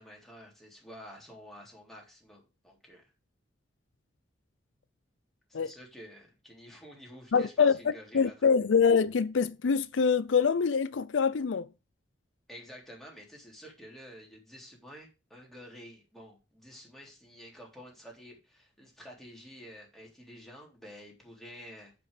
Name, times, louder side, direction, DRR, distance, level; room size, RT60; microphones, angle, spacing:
voice 1, 0.0-3.1 5.5-8.4 12.5-21.9, equal, ahead, 3.6 m, -50 dB
voice 2, 7.3-7.7 8.1-11.7, left 6 dB, 90° left, 0.5 m, -25 dB
9.2 x 6.1 x 4.9 m
head